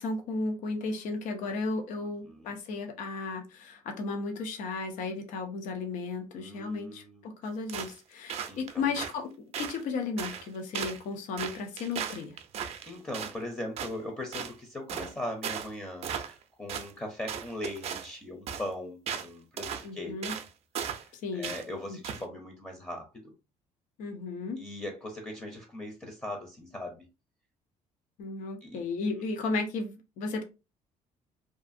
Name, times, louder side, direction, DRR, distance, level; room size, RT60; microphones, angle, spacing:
voice 1, 0.0-9.3 9.6-12.4 19.8-20.3 21.1-21.5 21.9-22.0 24.0-24.6 28.2-30.4, left 3 dB, 80° left, 0.6 m, -34 dB
voice 2, 6.4-7.2 8.5-8.9 12.9-20.1 21.0-23.3 24.6-27.1 28.6-28.8, left 1 dB, 15° left, 0.6 m, -40 dB
sound 1, 7.7-8.0 8.3-9.1 9.5-9.8 10.2-10.5 10.7-11.0 11.4-13.4 13.8-13.9 14.3-14.5 14.9-15.1 15.4-15.7 16.0-16.4 16.7-16.9 17.3-18.1 18.5-18.6 19.1-19.3 19.6-19.9 20.2-20.5 20.7-21.1 21.4-21.6 22.0-22.2, right 8 dB, 55° right, 0.4 m, -36 dB
2.5 x 2.5 x 2.5 m
cardioid pair, 125°, 13 cm